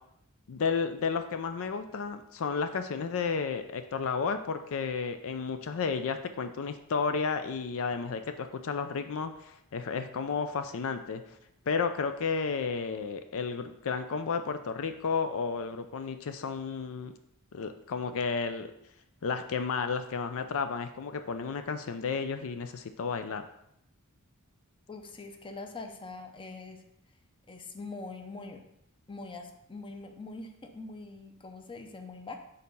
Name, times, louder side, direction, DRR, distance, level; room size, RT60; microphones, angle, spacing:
voice 1, 0.5-11.2 11.7-17.1 17.5-18.7 19.2-23.5, left 5 dB, 65° left, 9 dB, 0.4 m, -32 dB
voice 2, 24.9-26.8 27.5-28.6 29.1-32.4, left 3 dB, 25° left, 5 dB, 0.6 m, -43 dB
6.6 x 4.1 x 5.3 m, 0.79 s
head